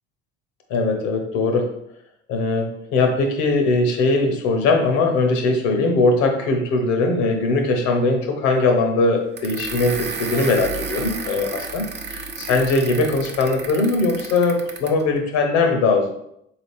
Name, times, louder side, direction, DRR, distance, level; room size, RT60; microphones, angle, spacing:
voice 1, 0.7-1.7 2.3-16.1, left 3 dB, 70° left, 4 dB, 0.9 m, -20 dB
sound 1, 9.4-15.0, right 4 dB, 35° right, 0.7 m, -32 dB
3.8 x 2.9 x 3.4 m, 0.75 s
hypercardioid pair, 65°, 29 cm